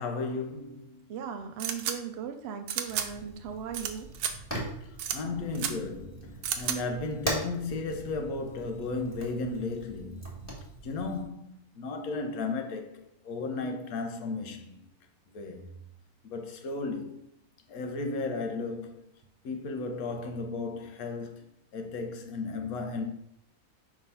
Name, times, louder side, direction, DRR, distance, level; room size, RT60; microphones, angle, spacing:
voice 1, 0.0-1.1 5.1-10.2 10.8-14.8 15.3-15.7 16.3-17.2 17.7-19.0 19.4-21.4 21.7-23.0, left 3 dB, 70° left, 1.3 m, -34 dB
voice 2, 1.1-4.1, right 7 dB, 70° right, 0.6 m, -38 dB
sound 1, 1.6-1.9 2.7-3.1 3.7-4.3 5.0-5.2 5.5-5.7 6.4-6.8, right 8 dB, 90° right, 1.2 m, -31 dB
Fire, 2.9-11.2, right 1 dB, 10° left, 1.7 m, -41 dB
4.8 x 3.7 x 5.4 m
omnidirectional pair, 1.6 m